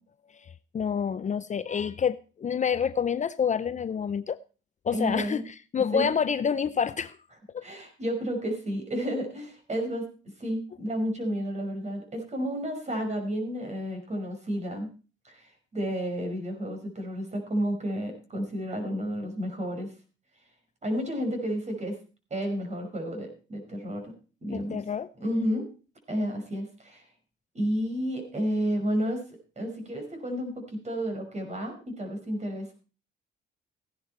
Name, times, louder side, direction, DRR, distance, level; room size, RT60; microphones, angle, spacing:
voice 1, 0.4-4.4 4.8-7.2 7.5-7.6 24.5-25.1, left 7 dB, 35° left, 0.6 m, -28 dB
voice 2, 4.9-5.4 5.9-6.1 7.6-10.1 10.4-14.9 15.2-19.9 20.8-22.0 22.3-24.1 24.4-24.8 25.2-25.7 26.1-27.0 27.5-29.2 29.6-32.7, equal, 35° right, 5.6 m, -31 dB
15.5 x 11.0 x 4.4 m
cardioid pair, 90°, 20 cm